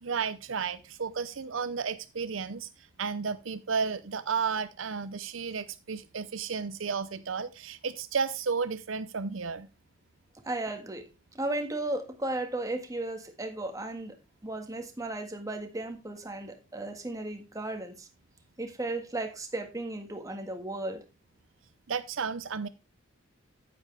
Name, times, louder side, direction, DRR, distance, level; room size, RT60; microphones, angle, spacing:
voice 1, 0.0-9.7 21.9-22.7, right 5 dB, 75° right, 0.7 m, -33 dB
voice 2, 10.4-11.1 11.3-14.2 14.4-18.1 18.6-21.0, right 2 dB, 15° right, 1.6 m, -35 dB
9.6 x 9.2 x 3.4 m
head